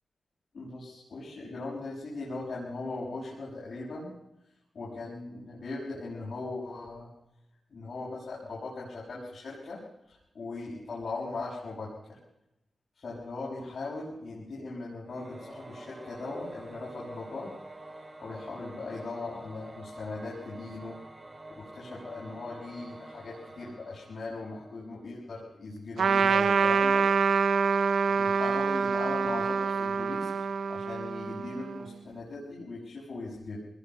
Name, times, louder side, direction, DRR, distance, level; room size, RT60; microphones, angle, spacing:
voice 1, 0.5-4.1 4.7-7.1 7.7-9.8 10.1-12.2 12.9-17.5 18.2-21.0 21.6-27.1 28.2-30.3 30.7-33.6, left 3 dB, 65° left, -6 dB, 6.8 m, -39 dB
Singing / Musical instrument, 15.0-25.1, right 2 dB, 25° right, 2.9 m, -47 dB
Trumpet, 26.0-31.8, right 5 dB, 80° right, 0.7 m, -26 dB
25.0 x 20.5 x 5.6 m, 0.89 s
wide cardioid pair, 110°, 0 cm